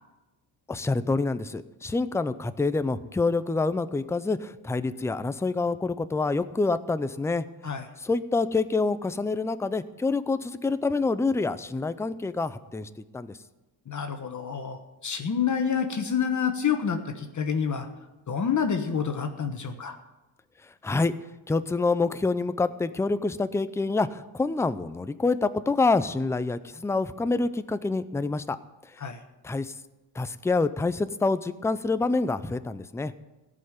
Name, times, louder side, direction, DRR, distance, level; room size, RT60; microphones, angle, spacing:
voice 1, 0.7-7.4 8.0-13.4 20.8-21.1 21.5-28.6 29.4-29.7 30.2-33.1, left 3 dB, 5° left, 12 dB, 0.5 m, -27 dB
voice 2, 13.9-17.9 18.3-19.9 29.0-29.2, left 7 dB, 35° left, 5 dB, 1.4 m, -28 dB
15.5 x 5.6 x 9.5 m, 1.1 s
cardioid pair, 100°, 48 cm